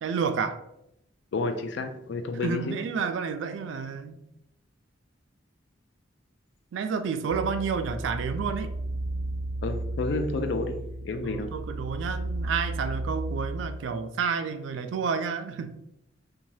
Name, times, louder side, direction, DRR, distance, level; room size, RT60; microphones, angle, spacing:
voice 1, 0.0-0.6 2.4-4.2 6.7-8.7 11.2-15.7, right 6 dB, 70° right, 8 dB, 0.3 m, -30 dB
voice 2, 1.3-2.8 9.6-11.5, left 3 dB, 60° left, 7 dB, 0.3 m, -30 dB
sound 1, 7.3-13.7, right 2 dB, 35° right, 0.6 m, -33 dB
2.7 x 2.2 x 3.1 m, 0.83 s
head